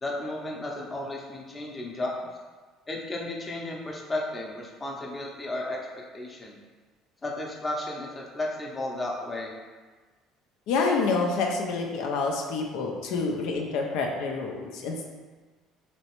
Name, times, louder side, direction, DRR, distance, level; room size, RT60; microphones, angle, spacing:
voice 1, 0.0-2.2 2.9-5.9 6.1-6.6 7.2-9.5, left 1 dB, 25° left, -2 dB, 0.7 m, -33 dB
voice 2, 10.7-15.1, left 4 dB, 75° left, 1 dB, 0.5 m, -27 dB
3.1 x 3.0 x 3.0 m, 1.4 s
supercardioid pair, 85°, 0 cm